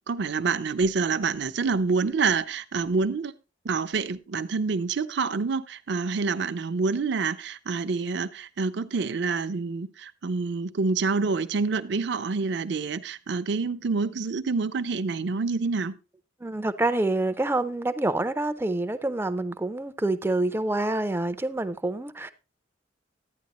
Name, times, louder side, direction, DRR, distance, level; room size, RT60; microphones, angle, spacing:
voice 1, 0.0-3.3 3.6-16.0, right 4 dB, 65° right, 0.6 m, -27 dB
voice 2, 16.4-22.3, right 2 dB, 10° right, 0.4 m, -27 dB
11.5 x 9.2 x 3.0 m
head